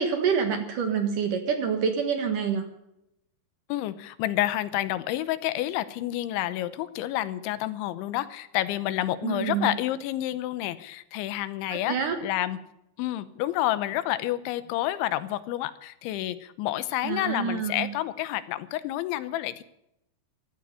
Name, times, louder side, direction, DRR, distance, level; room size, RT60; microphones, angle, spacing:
voice 1, 0.0-2.7 9.2-9.7 11.7-12.2 17.0-17.9, right 6 dB, 60° right, 6 dB, 2.5 m, -27 dB
voice 2, 3.7-12.6 13.0-19.6, left 14 dB, 85° left, 14 dB, 3.3 m, -29 dB
16.5 x 13.0 x 6.9 m, 0.82 s
omnidirectional pair, 5.2 m